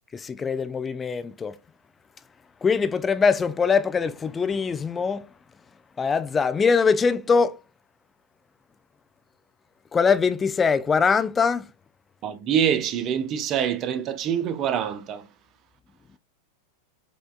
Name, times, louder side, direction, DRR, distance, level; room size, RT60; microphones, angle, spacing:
voice 1, 0.1-1.6 2.6-5.3 6.0-7.6 9.9-11.7, left 5 dB, 20° left, 0.3 m, -22 dB
voice 2, 12.2-15.3, right 9 dB, 40° right, 0.5 m, -25 dB
5.0 x 2.3 x 2.3 m
figure-of-eight pair, 95°, 0 cm